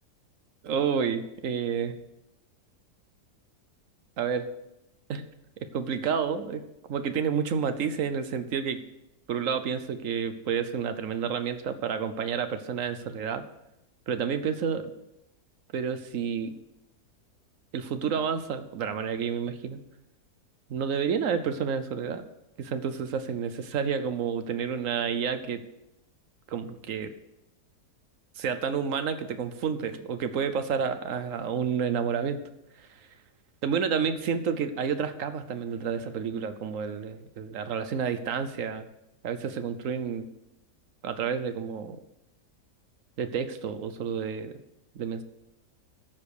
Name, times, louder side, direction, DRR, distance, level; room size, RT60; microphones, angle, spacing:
voice 1, 0.6-2.0 4.2-4.5 5.1-5.2 5.6-6.6 6.9-8.8 9.3-13.4 14.1-14.9 15.7-16.5 17.7-19.8 20.7-22.2 22.6-25.6 26.5-27.1 28.4-32.4 32.8-32.9 33.6-38.9 39.2-40.3 41.0-42.0 43.2-44.5 44.9-45.2, right 7 dB, 60° right, 10 dB, 1.1 m, -30 dB
13.0 x 5.1 x 6.6 m, 0.86 s
omnidirectional pair, 1.7 m